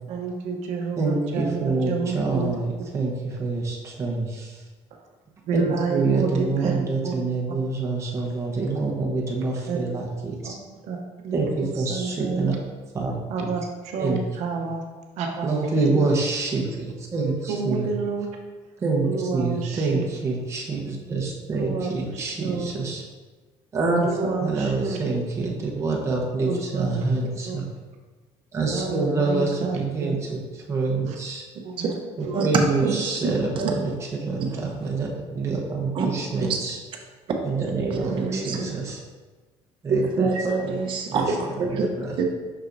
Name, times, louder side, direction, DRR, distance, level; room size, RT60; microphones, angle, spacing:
voice 1, 0.1-2.6 4.9-5.0 5.5-6.8 7.0-7.1 9.7-9.8 10.4-10.5 10.8-11.0 11.2-12.5 13.3-14.8 15.2-15.5 15.8-16.2 17.5-18.3 19.0-20.0 21.5-22.7 24.0-25.0 26.5-27.0 27.4-27.6 28.7-30.1 31.1-31.2 31.6-32.0 32.2-32.5 33.1-33.3, right 4 dB, 75° right, 1 dB, 0.8 m, -30 dB
voice 2, 1.0-3.1 3.4-4.6 5.5-10.5 11.3-12.5 12.9-13.1 13.4-13.5 14.0-14.2 15.4-17.9 18.8-19.1 19.3-23.0 23.7-24.0 24.4-27.7 28.5-30.4 30.7-31.4 32.2-36.8 37.4-39.0 39.8-40.3 40.6-40.8 41.1-41.3 41.6-42.2, right 3 dB, 25° right, -2 dB, 1.0 m, -26 dB
voice 3, 32.8-33.7 34.4-34.6 35.9-36.1 36.5-36.6 37.9-38.7 39.9-41.9 42.2-42.3, right 4 dB, 45° right, 1 dB, 0.9 m, -26 dB
6.3 x 5.9 x 2.7 m, 1.3 s
cardioid pair, 150°, 12 cm